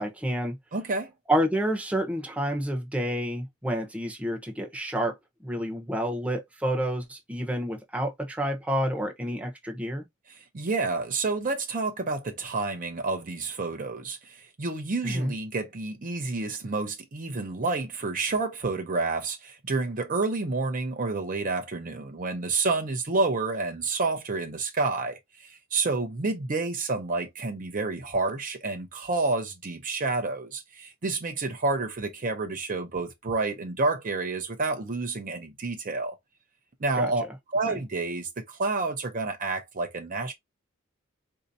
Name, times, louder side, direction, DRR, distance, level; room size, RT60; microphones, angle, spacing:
voice 1, 0.0-0.6 1.3-5.2 5.4-10.1 15.0-15.3 37.0-37.1 37.7-37.8, equal, 5° right, 0.8 m, -29 dB
voice 2, 0.7-1.1 10.4-36.2 36.8-37.3 37.5-40.3, right 3 dB, 40° right, 0.6 m, -29 dB
4.2 x 2.7 x 2.6 m
head